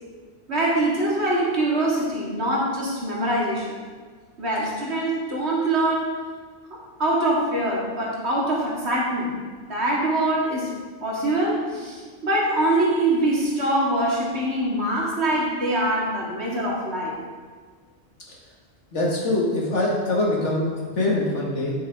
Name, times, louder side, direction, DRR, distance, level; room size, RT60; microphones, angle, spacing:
voice 1, 0.5-3.8 4.4-6.2 6.7-9.4 9.7-10.7 11.0-17.2, right 1 dB, 65° right, -4 dB, 2.3 m, -24 dB
voice 2, 18.9-21.7, left 2 dB, 75° left, -3 dB, 2.1 m, -23 dB
9.2 x 7.5 x 3.6 m, 1.5 s
omnidirectional pair, 1.2 m